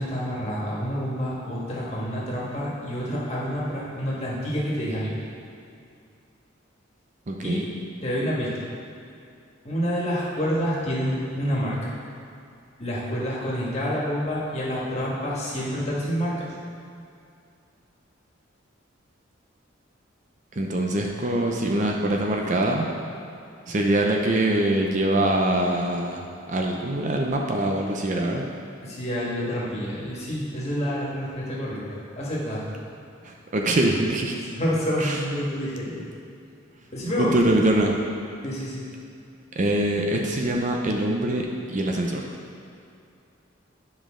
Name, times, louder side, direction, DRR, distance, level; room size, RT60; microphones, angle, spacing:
voice 1, 0.0-5.1 7.4-7.6 8.0-8.6 9.6-11.8 12.8-16.5 28.8-32.6 34.5-36.1 36.9-37.4 38.4-38.8, equal, 35° left, -6 dB, 1.6 m, -28 dB
voice 2, 7.3-7.6 20.5-22.9 23.7-26.2 26.5-28.5 33.2-34.4 35.0-35.2 37.2-37.9 39.6-42.3, right 1 dB, 40° right, 1 dB, 0.5 m, -23 dB
9.6 x 5.2 x 3.7 m, 2.5 s
head